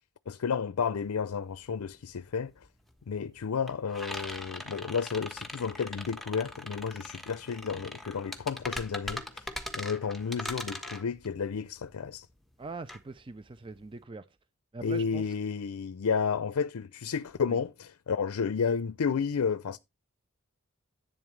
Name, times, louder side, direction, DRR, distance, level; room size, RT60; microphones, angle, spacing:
voice 1, 0.3-2.5 3.1-9.5 9.7-12.3 14.8-19.8, left 6 dB, 80° left, 0.5 m, -31 dB
sound 1, 1.0-1.1 1.3-14.0, left 1 dB, ahead, 1.2 m, -41 dB
voice 2, 12.6-14.3 14.7-15.3 17.5-17.6, right 3 dB, 25° right, 0.5 m, -42 dB
11.0 x 8.3 x 3.2 m
head